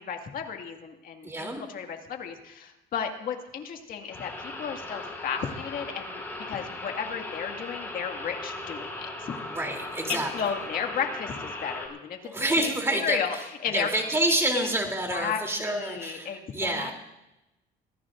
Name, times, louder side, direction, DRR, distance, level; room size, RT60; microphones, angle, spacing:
voice 1, 0.0-6.2 6.5-9.4 10.1-13.4 13.6-13.9 14.5-14.7 15.1-16.9, left 7 dB, 55° left, 4 dB, 2.1 m, -33 dB
voice 2, 1.2-1.6 9.5-10.5 12.2-13.4 13.7-16.9, right 1 dB, 15° right, 2 dB, 3.3 m, -28 dB
sound 1, 4.1-11.9, left 2 dB, 10° left, 5.5 m, -38 dB
25.5 x 16.5 x 2.6 m, 0.94 s
cardioid pair, 110°, 17 cm